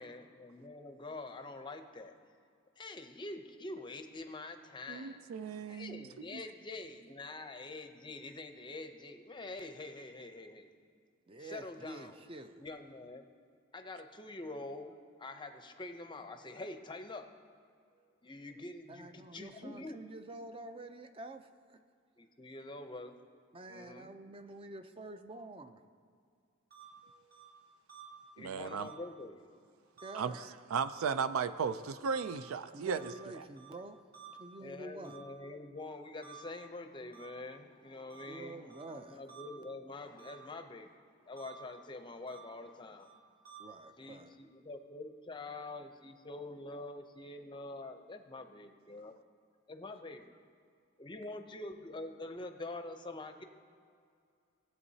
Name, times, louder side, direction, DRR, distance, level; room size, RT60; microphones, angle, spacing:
voice 1, 0.0-2.1 2.8-5.3 5.7-10.7 11.4-12.2 12.6-13.2 13.7-17.3 18.2-20.0 22.2-23.1 23.7-24.0 28.4-29.4 34.6-43.1 44.0-49.1 49.7-50.3 51.0-53.4, left 2 dB, 25° left, 7 dB, 0.6 m, -46 dB
voice 2, 4.9-6.1 6.3-6.4 28.4-28.9 30.1-33.4, right 6 dB, 85° right, 12 dB, 0.4 m, -36 dB
voice 3, 11.3-12.7 17.9-18.1 18.9-21.8 23.5-25.7 27.0-27.6 30.0-30.5 32.7-35.2 38.2-39.2 43.6-44.3, right 2 dB, 25° right, 9 dB, 0.5 m, -48 dB
sound 1, 26.7-26.8 27.3-27.4 27.9-28.0 28.8-28.9 30.0-30.1 30.9-31.0 31.6-31.7 32.1-32.2 33.0-33.1 33.6-33.7 34.1-34.3 35.0-35.2 36.2-36.3 37.1-37.3 38.1-38.2 38.7-38.8 39.3-39.4 40.2-40.3 41.4-41.5 42.3-42.4 43.0-43.1 43.4-43.6, right 9 dB, 50° right, 1.9 m, -53 dB
18.0 x 8.0 x 2.8 m, 2.3 s
head